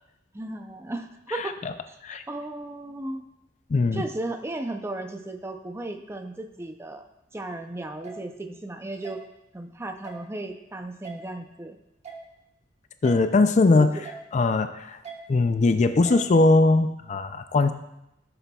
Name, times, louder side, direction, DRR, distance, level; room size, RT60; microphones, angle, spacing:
voice 1, 0.3-1.6 1.9-2.0 2.3-3.2 3.9-9.2 9.5-11.8 13.7-14.0, right 2 dB, 15° right, 6 dB, 0.5 m, -35 dB
voice 2, 1.3-1.7 2.0-2.2 3.7-4.0 13.0-13.9 14.3-15.0 15.3-17.7, left 3 dB, 40° left, 9 dB, 0.4 m, -20 dB
sound 1, 8.0-8.2 9.0-9.2 10.0-10.2 11.0-11.2 12.0-12.2 13.0-13.2 14.0-14.2 15.0-15.2 16.0-16.2, right 6 dB, 40° right, 1.3 m, -40 dB
14.0 x 6.8 x 2.3 m, 0.88 s
head